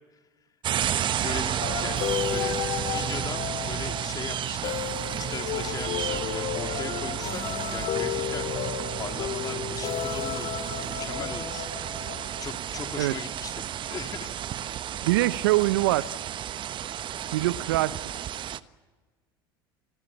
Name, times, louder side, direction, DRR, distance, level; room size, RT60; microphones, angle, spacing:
sound 1, 0.6-18.6, right 10 dB, 40° right, 1.1 m, -32 dB
voice 1, 0.8-2.0 2.3-7.4 7.7-8.6 9.0-12.0 12.4-14.3 14.8-14.9 16.9-17.1, left 5 dB, 30° left, 3.1 m, -39 dB
sound 2, 1.6-12.3, left 11 dB, 55° left, 2.9 m, -33 dB
voice 2, 15.0-16.1 17.3-18.0, right 18 dB, 75° right, 0.8 m, -23 dB
28.0 x 21.5 x 8.6 m
hypercardioid pair, 75°, 12 cm